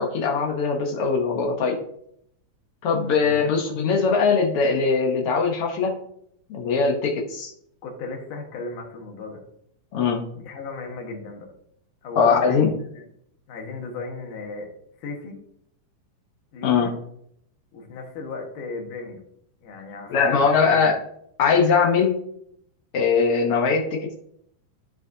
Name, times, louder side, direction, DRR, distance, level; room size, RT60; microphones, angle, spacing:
voice 1, 0.0-1.8 2.8-6.0 6.5-7.5 9.9-10.2 12.2-12.7 16.6-16.9 20.1-21.0 21.4-22.2 22.9-24.1, left 5 dB, 90° left, 0 dB, 1.2 m, -21 dB
voice 2, 3.0-3.5 7.8-9.4 10.4-11.5 12.0-13.1 13.5-14.7 15.0-15.4 16.5-16.9 17.7-19.2 19.6-21.0, left 3 dB, 70° left, 1 dB, 2.9 m, -36 dB
12.5 x 5.1 x 2.7 m, 0.71 s
omnidirectional pair, 3.9 m